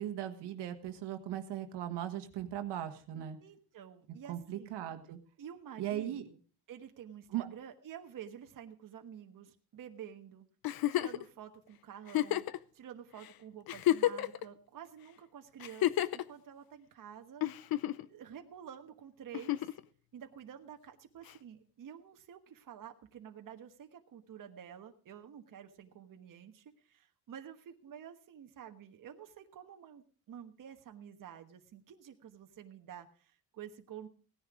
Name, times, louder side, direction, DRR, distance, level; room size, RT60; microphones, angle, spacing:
voice 1, 0.0-3.4 4.3-5.2 5.8-6.2 7.3-7.5, right 11 dB, 85° right, 7 dB, 1.6 m, -38 dB
voice 2, 3.4-4.8 5.4-6.4 6.7-10.5 10.9-17.7 18.0-19.7 20.1-34.1, right 9 dB, 55° right, 5 dB, 1.3 m, -50 dB
Giggle, 10.6-11.2 12.1-12.6 13.2-13.3 13.7-14.4 15.6-16.2 17.4-18.1 19.3-19.8 21.3-21.4, left 13 dB, 60° left, 0.7 m, -30 dB
17.0 x 10.5 x 4.9 m, 0.41 s
cardioid pair, 120°, 40 cm